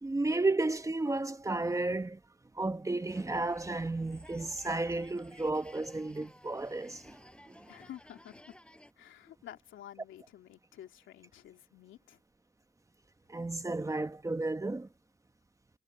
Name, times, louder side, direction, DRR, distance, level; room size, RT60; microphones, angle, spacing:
voice 1, 0.0-2.2 2.5-7.2 7.5-7.7 13.3-14.9, right 2 dB, 15° right, 1.3 m, -33 dB
sound 1, 3.0-8.9, left 1 dB, 5° left, 7.5 m, -56 dB
voice 2, 7.7-8.6 9.0-12.2, left 11 dB, 75° left, 2.8 m, -51 dB
cardioid pair, 90°, 20 cm